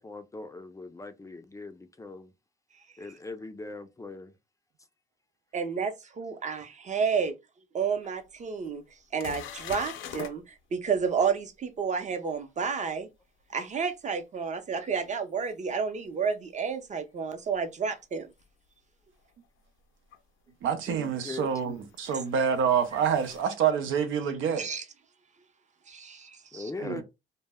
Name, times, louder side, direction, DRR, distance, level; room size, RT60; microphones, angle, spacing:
voice 1, 0.0-2.3 3.0-4.3 20.9-21.5 26.5-27.0, left 3 dB, 15° left, 0.3 m, -40 dB
voice 2, 5.5-7.3 7.7-8.8 9.1-13.1 13.5-18.3 22.1-22.2 24.6-24.8 25.9-26.7, right 6 dB, 35° right, 0.6 m, -31 dB
sound 1, 8.0-8.1 8.7-8.8 9.2-10.3 15.5-15.6 18.3-18.4 20.1-20.2 21.6-23.4, left 8 dB, 80° left, 0.5 m, -43 dB
voice 3, 20.6-24.7 26.8-27.0, right 7 dB, 85° right, 0.6 m, -27 dB
2.1 x 2.0 x 3.4 m
cardioid pair, 90°, 20 cm